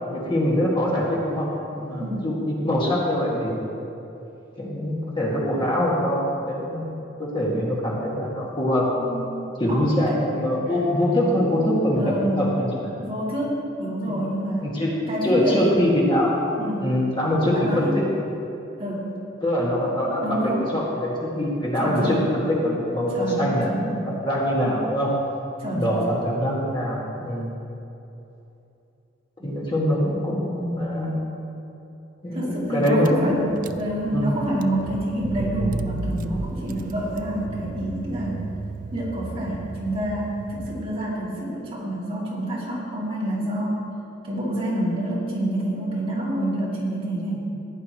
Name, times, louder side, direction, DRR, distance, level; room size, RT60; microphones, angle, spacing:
voice 1, 0.1-3.6 4.6-8.8 9.6-12.9 14.2-14.3 14.7-14.9 15.2-16.4 16.8-18.0 19.4-22.2 22.5-25.1 25.7-27.5 29.4-31.2 32.2-33.6 34.1-34.4, equal, 25° left, -6 dB, 2.0 m, -23 dB
voice 2, 9.0-10.2 12.0-12.5 13.0-14.6 15.1-15.7 16.6-16.9 17.5-18.0 18.8-19.1 20.2-20.7 21.8-22.2 23.1-24.0 25.6-26.2 29.4-29.5 32.3-38.5 38.9-43.8 44.2-47.5, right 1 dB, 30° right, -7 dB, 2.8 m, -27 dB
Car / Engine, 32.5-32.6 32.8-41.2, right 3 dB, 45° right, 0.4 m, -34 dB
15.5 x 10.5 x 3.1 m, 2.9 s
head